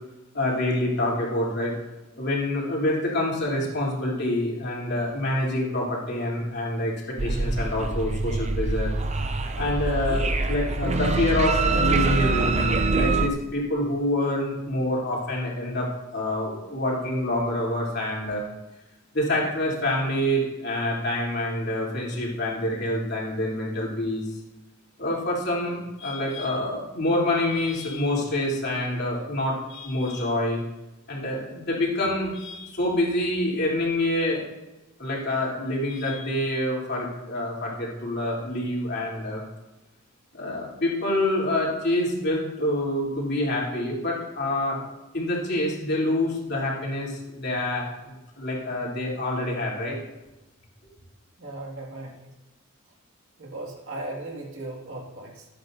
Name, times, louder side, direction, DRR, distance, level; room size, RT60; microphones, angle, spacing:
voice 1, 0.3-1.8 2.2-8.9 9.5-18.4 19.1-24.3 25.0-30.6 31.1-34.4 35.0-39.4 40.3-44.8 45.1-50.0, left 1 dB, 50° left, -4 dB, 3.3 m, -27 dB
sound 1, 7.2-13.3, right 3 dB, 30° right, 0.6 m, -24 dB
voice 2, 51.4-52.3 53.4-55.5, right 2 dB, 65° right, -1 dB, 2.2 m, -37 dB
19.5 x 8.8 x 2.7 m, 1.0 s
head